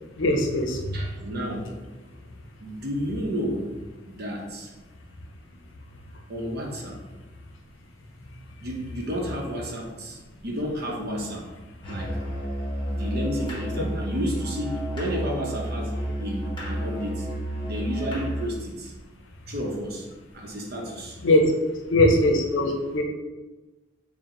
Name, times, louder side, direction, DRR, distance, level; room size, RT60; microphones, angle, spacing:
voice 1, 0.2-0.8 21.2-21.4 21.9-23.0, left 1 dB, 70° left, 3 dB, 0.6 m, -20 dB
voice 2, 0.9-1.7 2.6-3.7 4.0-4.7 6.3-7.0 8.6-11.5 11.9-12.1 12.9-17.3 17.6-18.9 19.5-20.1 20.3-21.2, equal, 55° right, 0 dB, 0.7 m, -31 dB
Musical instrument, 11.8-18.6, right 1 dB, 25° left, 1.0 m, -31 dB
4.4 x 2.1 x 3.7 m, 1.2 s
head